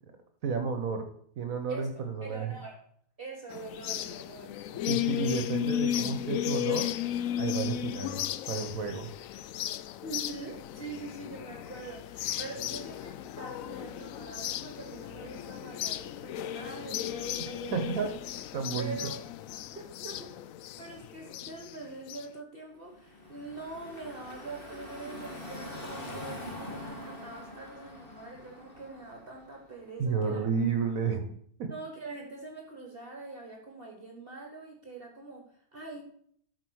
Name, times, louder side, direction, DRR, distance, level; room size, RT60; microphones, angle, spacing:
voice 1, 0.4-1.1 1.4-2.6 4.8-6.9 7.4-9.1 17.7-18.1 18.5-19.0 30.0-31.3 31.6-31.7, right 5 dB, 65° right, 6 dB, 1.4 m, -31 dB
voice 2, 1.7-2.8 3.2-4.5 10.0-18.1 18.8-19.2 19.7-20.3 20.7-30.5 31.7-36.0, right 3 dB, 40° right, 1 dB, 1.5 m, -44 dB
sound 1, 3.5-22.3, left 12 dB, 70° left, 0.9 m, -35 dB
Car passing by / Traffic noise roadway noise, 22.8-29.8, left 1 dB, 40° left, 1.7 m, -44 dB
12.5 x 4.8 x 6.3 m, 0.63 s
omnidirectional pair, 1.6 m